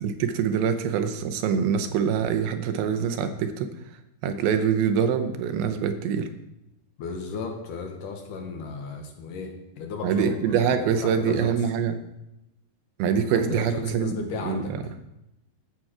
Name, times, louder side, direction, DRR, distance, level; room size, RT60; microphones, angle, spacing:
voice 1, 0.0-3.7 4.2-6.3 10.0-12.0 13.0-14.1 14.4-14.8, right 7 dB, 85° right, 8 dB, 2.7 m, -24 dB
voice 2, 7.0-11.6 13.3-14.7, left 5 dB, 70° left, 3 dB, 2.4 m, -35 dB
11.5 x 7.8 x 4.9 m, 0.89 s
omnidirectional pair, 4.3 m